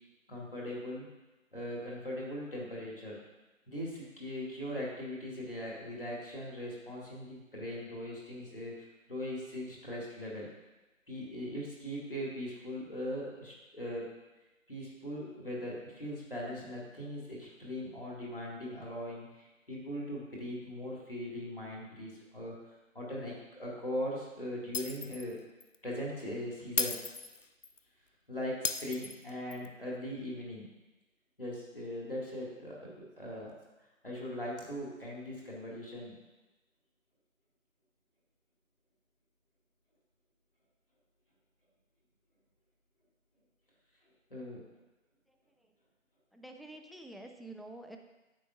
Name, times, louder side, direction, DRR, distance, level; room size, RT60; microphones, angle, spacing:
voice 1, 0.3-1.1 1.5-3.2 3.7-8.7 9.1-10.5 11.1-14.0 14.7-22.6 22.9-25.4 25.8-27.1 28.3-30.7 31.4-33.5 34.0-36.2 44.3-44.6, equal, 40° left, -4 dB, 2.2 m, -40 dB
Shatter, 24.7-25.3 25.6-25.8 26.8-27.8 28.6-29.7, left 4 dB, 65° left, 0.6 m, -35 dB
voice 2, 45.3-45.7 46.3-48.0, right 2 dB, ahead, 4 dB, 0.4 m, -49 dB
10.5 x 8.1 x 2.5 m, 1.1 s
figure-of-eight pair, 175°, 41 cm